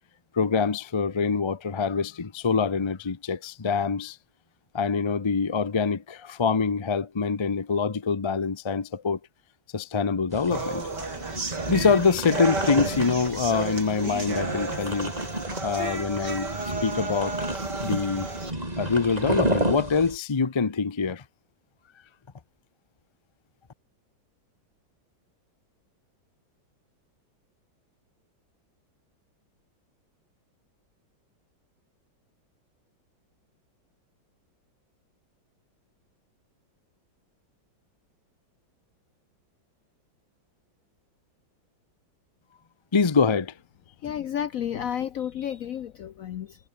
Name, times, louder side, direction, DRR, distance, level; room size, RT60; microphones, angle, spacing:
voice 1, 0.3-4.2 4.7-9.2 9.7-10.8 11.7-15.1 15.6-17.4 17.8-18.3 18.8-21.2 42.9-43.5, left 5 dB, 40° left, 0.4 m, -25 dB
sound 1, 10.3-20.2, right 1 dB, 20° right, 5.9 m, -32 dB
sound 2, 10.5-18.5, right 3 dB, 55° right, 4.8 m, -33 dB
voice 2, 44.0-46.6, left 9 dB, 65° left, 0.8 m, -31 dB
omnidirectional pair, 2.1 m